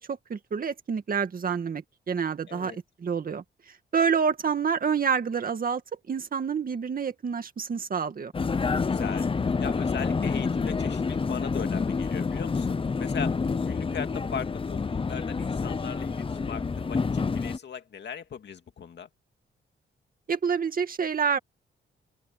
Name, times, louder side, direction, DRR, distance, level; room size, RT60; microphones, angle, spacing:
voice 1, 0.1-3.4 3.9-5.8 6.1-8.3 20.3-21.4, right 6 dB, 45° right, 2.1 m, -28 dB
voice 2, 2.5-2.8 8.9-9.3 9.6-13.4 13.7-19.1, left 7 dB, 60° left, 2.2 m, -39 dB
Vehicle, 8.3-17.6, left 4 dB, 25° left, 0.8 m, -28 dB
open air
wide cardioid pair, 130°, 20 cm